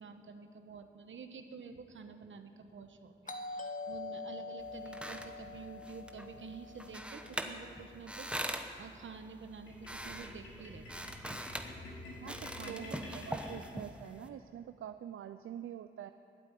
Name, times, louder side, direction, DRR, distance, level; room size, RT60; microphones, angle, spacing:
voice 1, 0.0-11.1 12.7-13.4, right 5 dB, 70° right, 7 dB, 1.1 m, -49 dB
Doorbell, 3.3-7.9, left 3 dB, 40° left, 1.2 m, -45 dB
sound 1, 4.6-14.3, right 1 dB, 5° right, 0.9 m, -43 dB
sound 2, 9.7-14.1, left 2 dB, 80° left, 4.0 m, -49 dB
voice 2, 12.2-12.8 13.1-16.1, right 10 dB, 85° right, 10 dB, 0.4 m, -46 dB
12.5 x 8.4 x 9.7 m, 2.5 s
cardioid pair, 80°, 21 cm